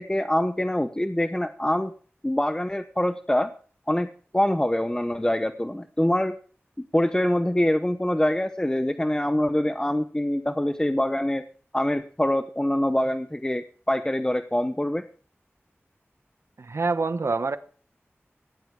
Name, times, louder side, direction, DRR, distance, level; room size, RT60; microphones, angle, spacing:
voice 1, 0.0-1.9 2.2-3.5 3.9-4.1 4.3-6.3 6.9-11.4 11.7-15.0, left 1 dB, 15° left, 8 dB, 0.9 m, -24 dB
voice 2, 16.6-17.6, right 3 dB, 85° right, 10 dB, 1.2 m, -26 dB
17.5 x 10.5 x 4.8 m, 0.42 s
wide cardioid pair, 70°, 5 cm